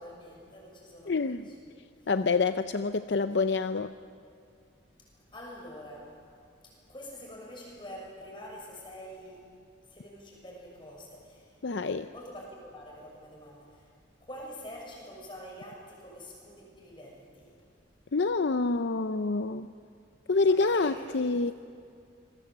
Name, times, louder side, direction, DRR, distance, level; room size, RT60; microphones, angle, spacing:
voice 1, 0.0-1.6 2.0-2.1 5.0-6.2 6.6-9.4 9.9-11.6 12.1-13.9 14.2-17.5 20.4-21.4, equal, 25° left, -1 dB, 6.6 m, -46 dB
voice 2, 1.1-1.5 2.1-3.9 11.6-12.1 18.1-19.7 20.3-21.5, left 3 dB, 60° left, 10 dB, 0.5 m, -27 dB
26.5 x 21.0 x 8.0 m, 2.3 s
head